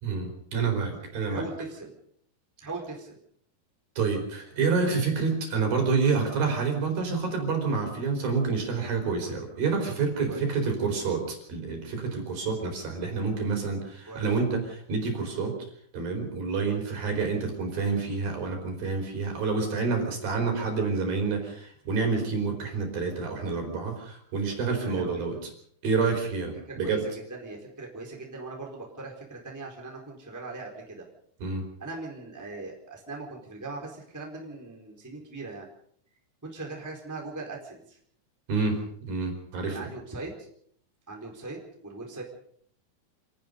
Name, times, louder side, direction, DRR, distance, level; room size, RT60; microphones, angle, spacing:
voice 1, 0.0-1.5 4.0-15.6 15.9-25.4 25.8-27.0 31.4-31.7 38.5-39.8, right 4 dB, 50° right, 3 dB, 6.1 m, -28 dB
voice 2, 1.2-1.9 2.6-3.2 10.3-10.5 14.1-14.3 16.6-16.8 24.5-25.2 26.7-31.0 31.8-35.7 36.4-38.0 39.7-40.3 41.1-42.2, right 3 dB, 5° right, -1 dB, 3.8 m, -40 dB
27.0 x 18.5 x 5.3 m, 0.64 s
omnidirectional pair, 5.3 m